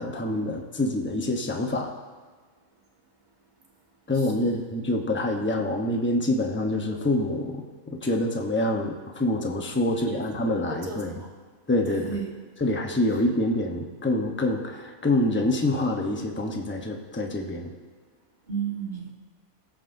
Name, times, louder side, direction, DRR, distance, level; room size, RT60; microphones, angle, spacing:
voice 1, 0.0-1.9 4.1-7.6 7.9-11.1 11.7-12.2 12.6-17.7, left 1 dB, 10° left, 2 dB, 0.7 m, -26 dB
voice 2, 4.1-4.6 10.1-10.2 10.8-11.3 11.9-12.3 18.5-19.1, right 6 dB, 35° right, -2 dB, 1.6 m, -34 dB
20.5 x 7.7 x 2.7 m, 1.5 s
omnidirectional pair, 1.5 m